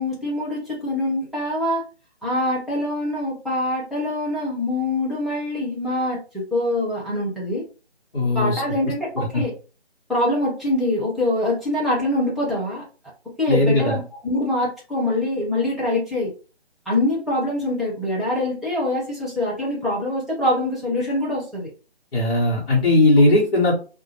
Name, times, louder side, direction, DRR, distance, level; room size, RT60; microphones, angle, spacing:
voice 1, 0.0-1.8 2.2-7.6 8.3-9.5 10.1-12.8 13.4-16.3 16.9-21.7, left 1 dB, ahead, -8 dB, 0.4 m, -24 dB
voice 2, 8.1-8.6 9.1-9.4 13.5-14.0 22.1-23.8, left 2 dB, 60° left, -6 dB, 1.0 m, -18 dB
2.1 x 2.1 x 2.9 m, 0.35 s
figure-of-eight pair, 165°, 33 cm